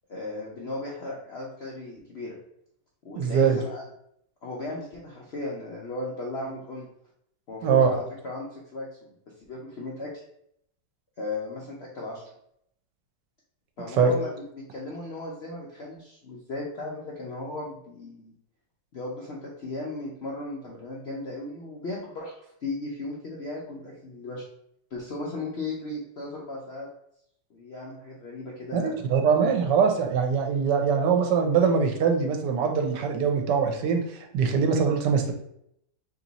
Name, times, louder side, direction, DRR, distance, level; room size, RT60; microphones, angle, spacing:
voice 1, 0.1-2.4 3.0-3.8 4.4-6.9 7.5-9.1 9.5-10.2 11.2-12.2 13.8-18.3 18.9-24.4 24.9-26.9 27.5-29.0, left 2 dB, 65° left, -4 dB, 0.6 m, -36 dB
voice 2, 3.2-3.6 7.6-7.9 14.0-14.1 28.7-34.0 34.3-35.3, right 6 dB, 85° right, 4 dB, 1.3 m, -22 dB
3.0 x 2.9 x 3.9 m, 0.74 s
omnidirectional pair, 1.8 m